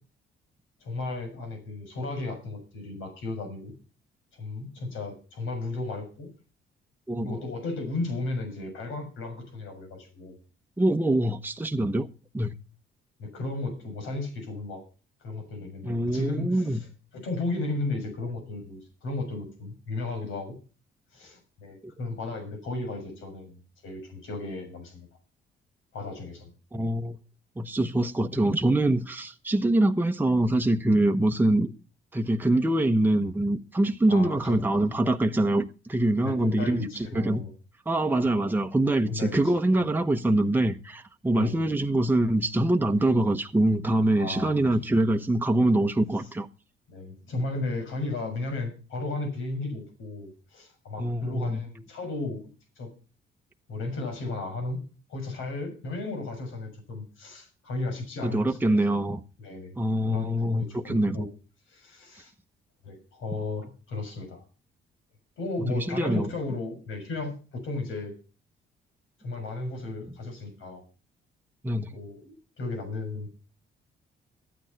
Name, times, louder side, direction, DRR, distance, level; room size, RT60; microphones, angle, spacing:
voice 1, 0.8-3.7 4.4-6.3 7.2-10.4 13.2-14.8 15.2-16.9 17.1-20.6 21.1-25.1 25.9-26.5 34.1-34.6 36.2-37.5 38.2-38.3 39.1-39.9 41.3-41.6 44.1-44.6 46.1-46.3 46.9-52.5 52.7-52.9 53.7-54.8 55.1-58.6 58.9-59.0 59.4-59.7 60.0-61.3 61.7-62.3 62.8-64.4 65.4-68.2 69.2-70.8 71.9-73.3, left 2 dB, 85° left, 7.0 m, -34 dB
voice 2, 7.1-7.4 10.8-12.1 12.3-12.5 15.8-16.8 21.8-21.9 26.7-27.2 27.6-31.7 32.1-37.5 37.9-46.5 51.0-51.6 58.2-59.2 59.8-61.3 65.7-66.3 71.6-71.9, right 1 dB, 10° right, 1.0 m, -24 dB
13.5 x 9.0 x 5.8 m
cardioid pair, 90°, 20 cm